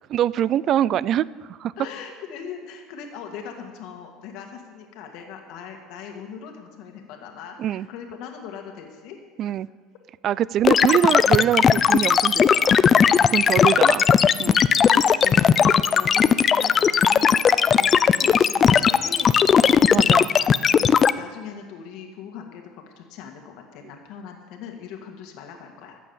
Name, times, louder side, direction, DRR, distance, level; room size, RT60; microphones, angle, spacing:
voice 1, 0.1-1.7 7.6-7.9 9.4-9.7 10.2-12.8 13.3-14.0 14.4-14.6 19.9-20.3, right 11 dB, 45° right, 20 dB, 0.3 m, -23 dB
voice 2, 1.8-9.2 10.8-11.1 13.5-14.0 14.4-19.8 20.4-22.6 23.0-26.0, left 7 dB, 65° left, 3 dB, 1.9 m, -40 dB
sound 1, 10.6-21.1, left 7 dB, 30° left, 0.4 m, -17 dB
13.5 x 8.4 x 7.1 m, 1.5 s
supercardioid pair, 125°, 0 cm